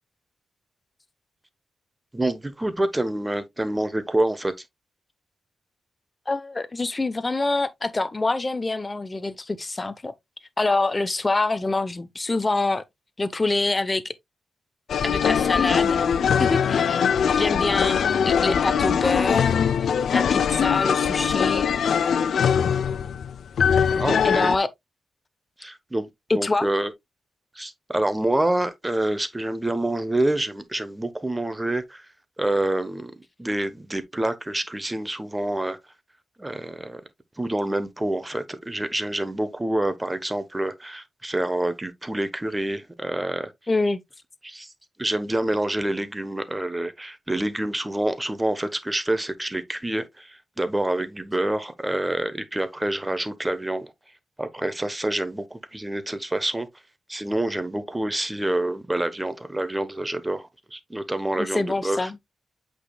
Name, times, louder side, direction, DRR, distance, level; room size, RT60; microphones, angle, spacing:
voice 1, 2.1-4.5 23.9-24.5 25.6-26.9 27.5-32.1 32.4-33.1 33.4-35.8 36.4-37.0 37.4-43.5 44.4-44.7 45.0-53.9 54.4-56.7 57.1-62.1, right 1 dB, 10° right, 1.0 m, -27 dB
voice 2, 6.3-10.1 10.6-12.8 13.2-14.1 15.0-16.1 16.4-17.0 17.4-19.5 20.1-21.7 24.3-24.7 26.3-26.7 43.7-44.0 61.4-62.2, left 2 dB, 20° left, 0.8 m, -25 dB
sound 1, 14.9-24.6, left 7 dB, 70° left, 0.5 m, -22 dB
8.1 x 5.2 x 2.3 m
wide cardioid pair, 150°, 0 cm